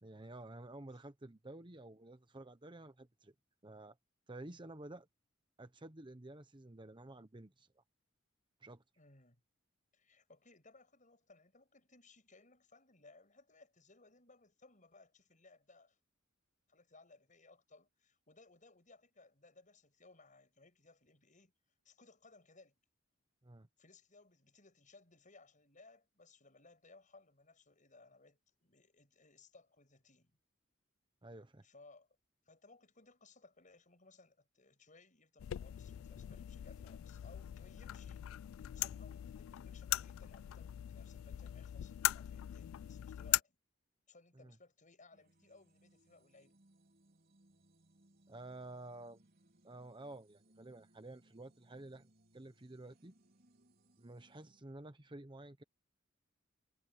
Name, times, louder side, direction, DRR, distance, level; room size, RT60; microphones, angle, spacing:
voice 1, 0.0-3.3 3.6-4.0 4.3-5.1 5.6-7.8 8.6-8.8 23.4-23.7 31.2-31.6 44.3-44.6 48.3-49.2 49.6-52.1 52.3-53.1 54.0-55.6, right 2 dB, 25° right, 1.0 m, -51 dB
voice 2, 9.0-9.4 9.9-16.0 16.7-21.5 21.9-22.8 23.8-30.3 31.6-32.1 32.5-38.3 38.7-43.6 44.1-46.6, left 3 dB, 40° left, 7.2 m, -63 dB
sound 1, 35.4-43.4, left 14 dB, 90° left, 0.3 m, -40 dB
sound 2, 45.1-54.6, right 1 dB, 50° right, 3.9 m, -70 dB
head